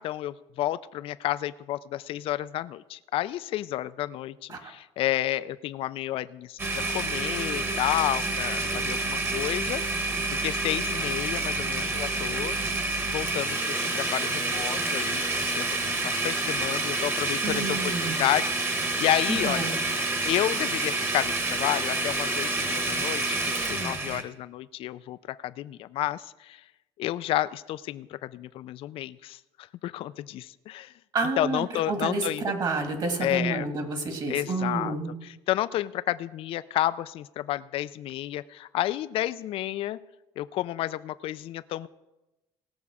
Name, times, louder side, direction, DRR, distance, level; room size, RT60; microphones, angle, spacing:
voice 1, 0.0-10.0 10.4-12.6 13.1-15.2 15.5-19.7 20.2-26.6 27.0-30.9 31.4-32.4 33.2-33.7 34.3-34.9 35.2-40.0 40.4-41.9, left 14 dB, 55° left, 15 dB, 0.4 m, -31 dB
Domestic sounds home sounds, 6.6-24.2, right 2 dB, 20° right, 1.3 m, -28 dB
voice 2, 17.4-18.3 19.3-19.8 31.1-35.1, right 3 dB, 40° right, 5 dB, 2.0 m, -30 dB
17.5 x 7.0 x 4.9 m, 1.0 s
cardioid pair, 130°, 11 cm